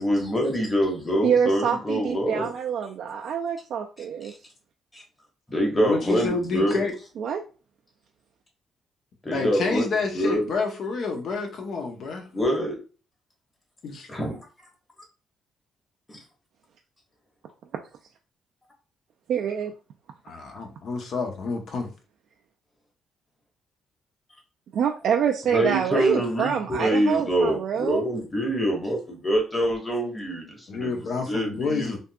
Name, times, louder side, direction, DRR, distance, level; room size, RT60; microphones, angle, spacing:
voice 1, 0.0-2.5 4.2-4.3 4.9-5.0 5.5-6.8 9.2-9.9 10.1-10.4 12.3-12.8 14.1-14.4 25.5-30.4 30.7-30.9 31.3-32.0, equal, 15° left, 1 dB, 1.2 m, -25 dB
voice 2, 1.2-4.3 7.2-7.4 19.3-19.7 24.7-28.1, right 7 dB, 70° right, 2 dB, 0.3 m, -26 dB
voice 3, 5.8-6.9 9.3-12.3 13.8-14.1 20.2-21.9 30.7-32.0, left 4 dB, 65° left, 3 dB, 0.8 m, -29 dB
3.5 x 2.7 x 2.3 m, 0.36 s
cardioid pair, 90°, 0 cm